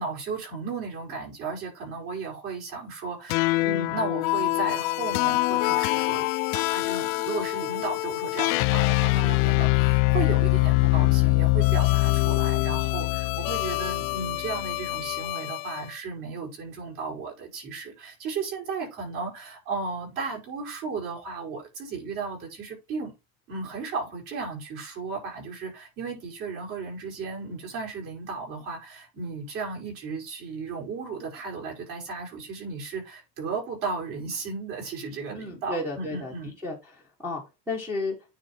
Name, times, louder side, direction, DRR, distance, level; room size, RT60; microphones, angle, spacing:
voice 1, 0.0-6.3 6.5-23.1 23.5-36.6, right 4 dB, 45° right, 5.3 m, -35 dB
sound 1, 3.3-15.8, left 21 dB, 65° left, 0.5 m, -24 dB
voice 2, 35.3-36.3 36.6-36.9 37.2-38.1, left 2 dB, 5° right, 1.1 m, -32 dB
9.6 x 3.3 x 4.3 m
cardioid pair, 165°, 47 cm